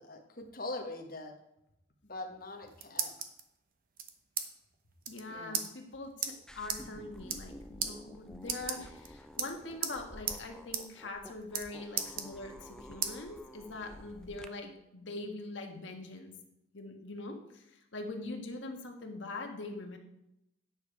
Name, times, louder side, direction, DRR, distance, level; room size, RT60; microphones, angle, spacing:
voice 1, 0.0-1.3 2.0-3.1 5.3-5.6, left 2 dB, 50° left, 2 dB, 1.3 m, -42 dB
sound 1, 2.4-3.4 4.0-4.5 4.7-4.8 5.0-5.2 5.5-5.7 6.2-6.3 6.7-6.8 7.2-7.5 7.8-7.9 8.4-9.1 9.4-10.0 10.3-10.4 10.7-10.8 11.1-11.7 12.0-12.7 13.0-13.1 13.6-14.5, right 8 dB, 45° right, 0.9 m, -35 dB
voice 2, 5.1-16.3 16.7-17.6 17.9-20.0, left 2 dB, 75° left, 3 dB, 1.6 m, -43 dB
sound 2, 6.5-14.5, equal, 5° left, 0.4 m, -51 dB
9.7 x 6.8 x 4.8 m, 0.84 s
head